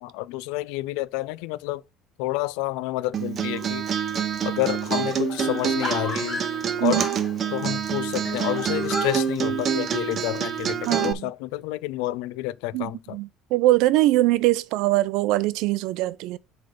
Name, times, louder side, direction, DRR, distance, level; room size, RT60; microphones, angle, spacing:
voice 1, 0.0-1.8 2.2-3.9 4.4-6.4 6.8-7.0 7.5-13.2, left 17 dB, 85° left, 0.4 m, -29 dB
Acoustic guitar, 3.1-11.1, right 8 dB, 40° right, 0.7 m, -27 dB
sound 1, 3.5-4.0 4.3-4.4 4.6-7.8 8.2-9.3, left 4 dB, 30° left, 2.0 m, -35 dB
voice 2, 6.8-7.1 10.9-11.3 12.7-16.4, right 17 dB, 75° right, 0.4 m, -22 dB
7.8 x 3.4 x 5.0 m
cardioid pair, 125°, 0 cm